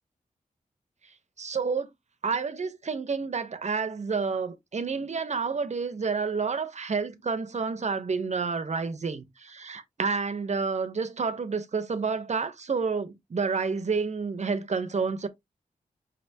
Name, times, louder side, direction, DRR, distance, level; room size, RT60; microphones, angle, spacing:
voice 1, 1.4-1.9 2.2-15.3, right 5 dB, 55° right, 0.9 m, -29 dB
5.5 x 3.4 x 2.8 m
wide cardioid pair, 75°, 14 cm